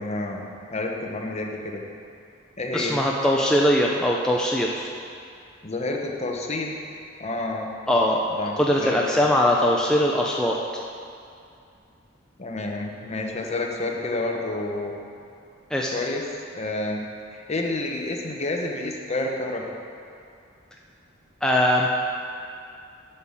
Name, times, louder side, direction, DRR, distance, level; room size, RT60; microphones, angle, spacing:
voice 1, 0.0-1.8 2.6-3.0 5.6-6.8 7.2-7.7 8.3-9.3 12.4-14.9 15.9-16.2 16.5-17.0 17.3-19.6, left 2 dB, 35° left, 1 dB, 1.0 m, -29 dB
voice 2, 2.7-4.9 7.9-8.2 8.6-10.6 15.7-15.9 21.4-21.9, left 1 dB, 5° left, -3 dB, 0.6 m, -21 dB
9.9 x 5.7 x 7.4 m, 2.4 s
head